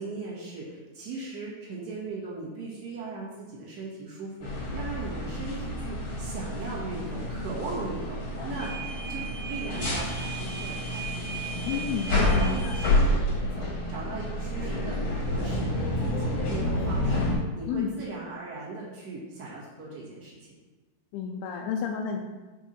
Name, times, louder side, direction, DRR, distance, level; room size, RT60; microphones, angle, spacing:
voice 1, 0.0-8.7 9.1-11.2 12.2-20.5, right 3 dB, 45° right, -7 dB, 1.4 m, -38 dB
sound 1, 4.4-17.4, left 1 dB, 50° left, 1.5 m, -29 dB
voice 2, 11.7-12.8 17.7-18.0 21.1-22.2, left 6 dB, 80° left, 2 dB, 2.4 m, -31 dB
8.3 x 4.7 x 4.4 m, 1.2 s
omnidirectional pair, 4.9 m